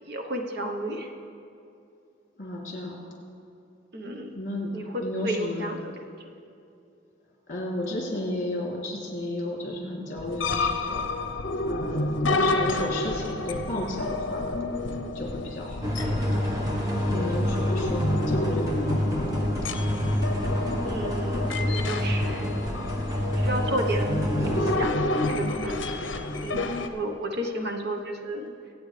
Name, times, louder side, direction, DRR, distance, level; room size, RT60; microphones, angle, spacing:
voice 1, 0.1-1.1 3.9-4.3 4.7-5.9 6.2-6.3 20.9-22.6 23.3-26.1 26.4-28.5, right 1 dB, 55° right, 3 dB, 1.1 m, -32 dB
voice 2, 2.4-3.0 4.3-4.7 5.0-5.6 7.5-11.1 11.7-14.8 15.1-16.4 17.1-19.4, left 1 dB, 45° left, -3 dB, 3.1 m, -33 dB
sound 1, 10.2-26.9, left 2 dB, 65° left, 0.8 m, -30 dB
sound 2, 15.8-24.8, equal, 20° right, 1.2 m, -27 dB
24.0 x 8.9 x 3.4 m, 2.7 s
head